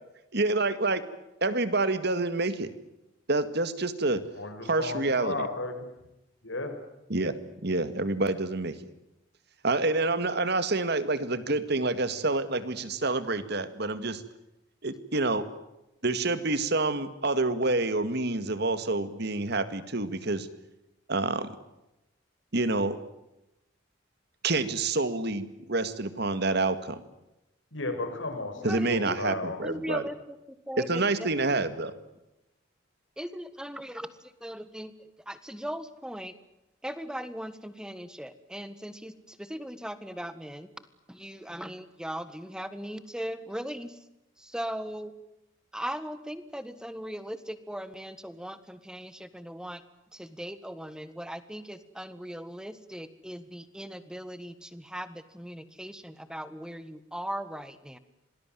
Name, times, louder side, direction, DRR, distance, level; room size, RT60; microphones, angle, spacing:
voice 1, 0.3-1.0 1.4-2.7 3.3-4.2 4.6-5.5 7.1-7.3 7.6-8.8 9.6-14.2 14.8-15.4 16.0-20.5 21.1-21.5 22.5-23.0 24.4-27.0 28.6-30.1 30.9-31.9, right 2 dB, 55° right, 13 dB, 2.0 m, -27 dB
voice 2, 4.4-5.9 6.4-6.7 27.7-29.6, left 2 dB, 75° left, 6 dB, 5.9 m, -34 dB
voice 3, 28.6-31.3 33.2-36.3 36.8-40.7 41.1-44.0 44.4-45.1 45.7-49.8 50.1-58.0, equal, 5° right, 13 dB, 1.5 m, -39 dB
26.5 x 19.5 x 9.3 m, 0.91 s
head